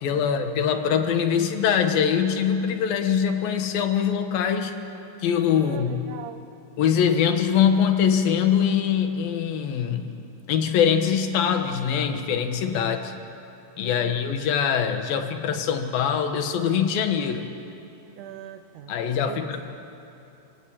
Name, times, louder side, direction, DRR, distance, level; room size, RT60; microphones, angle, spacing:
voice 1, 0.0-4.7 5.2-6.0 6.8-10.1 10.5-13.1 13.8-17.5 18.9-19.6, left 8 dB, 75° left, 6 dB, 3.1 m, -23 dB
voice 2, 5.6-6.5 12.7-13.0 13.8-14.4 18.2-18.9 19.3-19.6, right 11 dB, 75° right, 8 dB, 2.0 m, -41 dB
28.5 x 18.0 x 8.8 m, 2.8 s
omnidirectional pair, 4.2 m